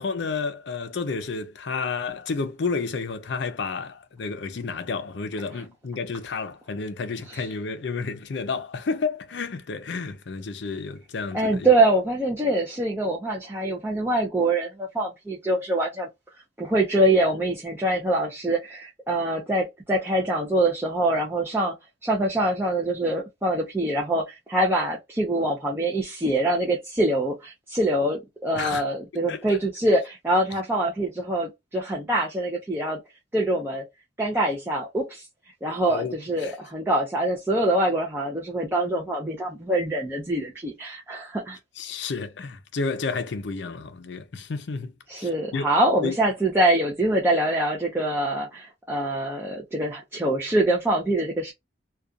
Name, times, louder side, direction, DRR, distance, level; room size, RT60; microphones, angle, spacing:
voice 1, 0.0-11.7 28.6-28.8 29.3-29.6 35.9-36.2 36.4-36.5 41.8-45.7 46.0-46.2, left 4 dB, 65° left, 0.5 m, -31 dB
voice 2, 11.3-16.1 16.6-21.8 22.0-33.0 33.3-33.8 34.2-35.3 35.6-41.6 45.1-51.5, right 1 dB, 10° right, 0.5 m, -24 dB
2.4 x 2.2 x 2.4 m
head